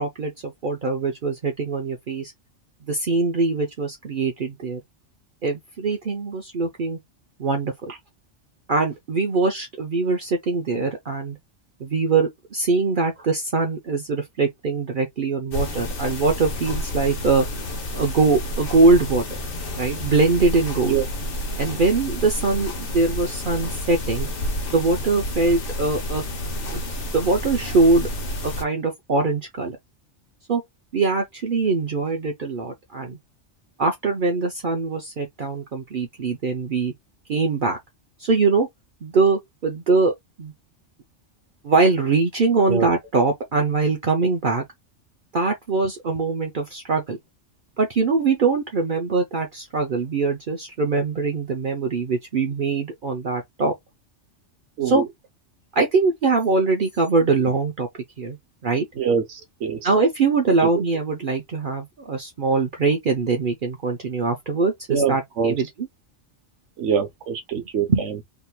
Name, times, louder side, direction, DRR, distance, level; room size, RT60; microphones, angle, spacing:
voice 1, 0.0-2.3 2.9-4.8 5.4-7.0 7.4-7.7 8.7-11.4 11.8-17.5 17.9-19.2 19.8-21.0 21.6-24.3 24.7-26.2 26.7-26.8 27.1-28.1 28.4-29.8 30.5-30.6 30.9-33.2 33.8-36.9 37.3-37.8 38.2-38.7 39.0-40.1 40.4-40.5 41.6-44.6 45.3-47.2 47.8-53.7 54.8-55.0 55.7-57.9 58.2-58.4 58.6-58.9 59.8-65.7 67.9-68.2, right 3 dB, 50° right, 0.8 m, -22 dB
sound 1, 15.5-28.6, left 1 dB, 55° left, 1.1 m, -30 dB
voice 2, 59.0-59.8 64.9-65.5 66.8-68.1, right 6 dB, 80° right, 1.2 m, -24 dB
3.7 x 2.9 x 2.2 m
omnidirectional pair, 1.2 m